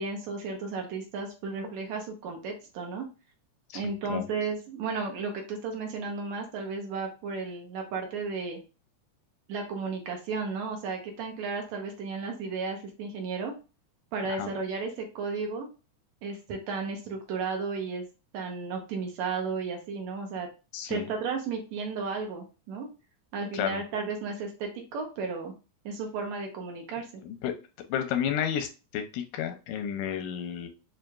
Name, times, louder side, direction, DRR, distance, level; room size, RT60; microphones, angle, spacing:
voice 1, 0.0-3.1 3.7-8.6 9.5-13.5 14.1-15.7 16.2-18.0 18.3-20.5 20.9-22.9 23.3-25.5 25.9-27.1, right 4 dB, 75° right, 2 dB, 1.9 m, -34 dB
voice 2, 20.7-21.1 23.5-23.8 27.2-27.5 27.9-30.7, left 9 dB, 90° left, 7 dB, 2.2 m, -31 dB
6.4 x 2.5 x 2.3 m, 0.31 s
omnidirectional pair, 3.5 m